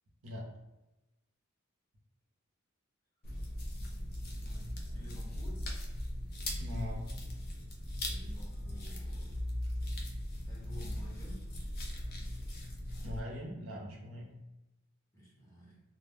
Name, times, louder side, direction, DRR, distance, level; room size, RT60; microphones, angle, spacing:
sound 1, 3.2-13.2, left 1 dB, 45° left, 0.4 m, -39 dB
voice 1, 4.2-5.7 8.0-9.5 10.5-11.5 15.1-15.8, equal, 15° left, -6 dB, 0.9 m, -52 dB
voice 2, 6.6-7.1 13.0-14.4, left 1 dB, 85° right, -2 dB, 0.7 m, -41 dB
2.1 x 2.0 x 3.3 m, 0.98 s
head